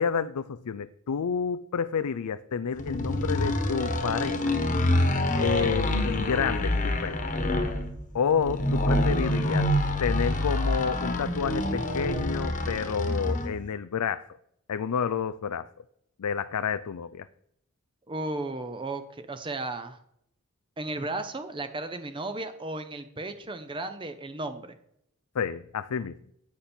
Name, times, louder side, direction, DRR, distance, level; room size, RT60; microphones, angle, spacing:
voice 1, 0.0-4.5 5.4-7.2 8.1-9.7 10.0-14.3 14.7-15.7 16.2-17.3 25.3-26.2, left 6 dB, 90° left, 12 dB, 0.5 m, -29 dB
sound 1, 2.8-13.6, left 1 dB, 35° left, 1.3 m, -27 dB
voice 2, 18.1-20.0 20.8-24.8, right 2 dB, 20° right, 9 dB, 0.7 m, -34 dB
10.5 x 8.4 x 4.4 m, 0.71 s
head